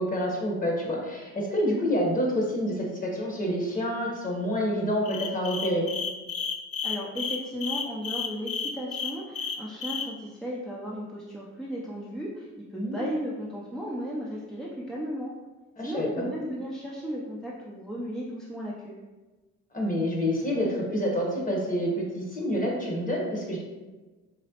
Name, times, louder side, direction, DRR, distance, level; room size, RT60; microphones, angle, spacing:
voice 1, 0.0-5.9 12.7-13.1 15.8-16.3 19.7-23.6, equal, 25° left, -1 dB, 1.1 m, -28 dB
sound 1, 5.0-10.1, left 6 dB, 50° left, 0.5 m, -32 dB
voice 2, 6.8-15.3 15.8-19.0, equal, ahead, -6 dB, 0.5 m, -35 dB
4.1 x 2.9 x 2.9 m, 1.2 s
cardioid pair, 90°, 30 cm